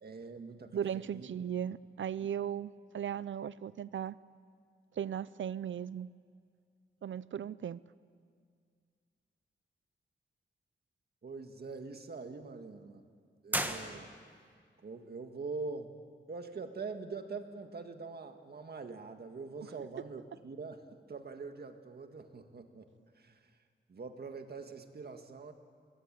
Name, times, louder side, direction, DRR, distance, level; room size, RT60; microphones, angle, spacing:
voice 1, 0.0-1.3 11.2-13.0 13.4-14.1 14.8-15.9 16.3-22.9 23.2-23.5 23.9-25.5, right 4 dB, 55° right, 6 dB, 1.8 m, -44 dB
voice 2, 0.7-4.2 5.0-6.1 7.0-7.8, right 9 dB, 80° right, 18 dB, 0.6 m, -37 dB
sound 1, 13.5-14.5, right 1 dB, 10° right, 1.4 m, -36 dB
25.0 x 20.5 x 9.0 m, 2.1 s
wide cardioid pair, 150°, 20 cm